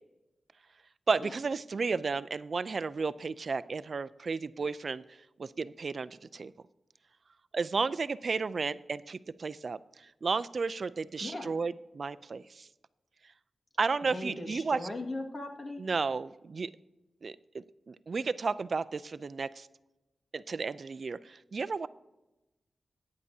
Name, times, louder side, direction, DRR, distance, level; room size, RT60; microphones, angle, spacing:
voice 1, 1.1-5.0 5.4-6.5 7.5-9.8 10.2-12.7 13.8-14.9 15.8-16.7 17.2-19.7 20.3-21.9, right 4 dB, 60° right, 15 dB, 0.4 m, -33 dB
voice 2, 11.2-11.5 14.0-15.9, left 2 dB, 50° left, 3 dB, 1.9 m, -39 dB
14.5 x 9.6 x 2.8 m, 0.97 s
cardioid pair, 70°, 0 cm